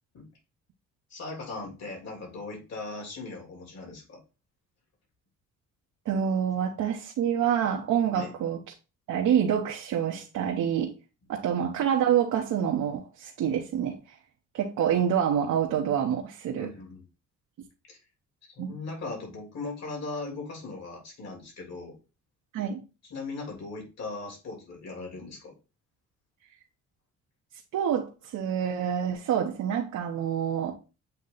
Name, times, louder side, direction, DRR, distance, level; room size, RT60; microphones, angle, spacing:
voice 1, 1.1-4.2 8.1-8.3 16.5-17.0 17.9-18.0 18.6-21.9 23.1-25.5, left 3 dB, 60° left, 3.5 m, -38 dB
voice 2, 6.0-8.6 9.1-10.9 11.3-14.2 14.5-16.7 18.6-18.8 22.5-22.8 27.7-30.7, right 9 dB, 75° right, 1.0 m, -27 dB
8.1 x 2.9 x 4.0 m
cardioid pair, 90°, 30 cm